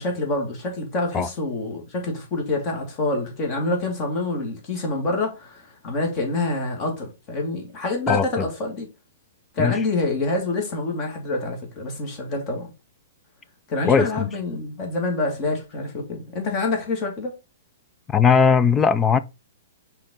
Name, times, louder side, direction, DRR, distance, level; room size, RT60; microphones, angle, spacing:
voice 1, 0.0-8.9 9.5-12.7 13.7-17.3, left 2 dB, 30° left, 2.4 m, -26 dB
voice 2, 8.1-8.5 9.6-9.8 13.8-14.3 18.1-19.2, left 6 dB, 15° left, 0.4 m, -19 dB
5.7 x 4.5 x 3.9 m
hypercardioid pair, 155°, 0 cm